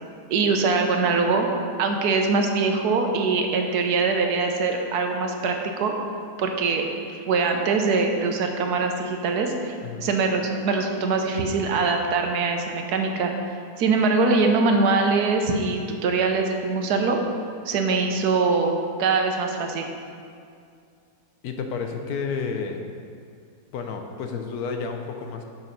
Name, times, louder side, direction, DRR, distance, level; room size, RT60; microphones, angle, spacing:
voice 1, 0.3-1.5 1.8-5.9 6.4-13.3 13.8-17.2 17.6-19.9, right 4 dB, 80° right, 4 dB, 1.3 m, -23 dB
voice 2, 21.4-22.8 23.7-25.4, left 5 dB, 75° left, 4 dB, 1.2 m, -31 dB
7.2 x 5.5 x 5.3 m, 2.3 s
omnidirectional pair, 1.7 m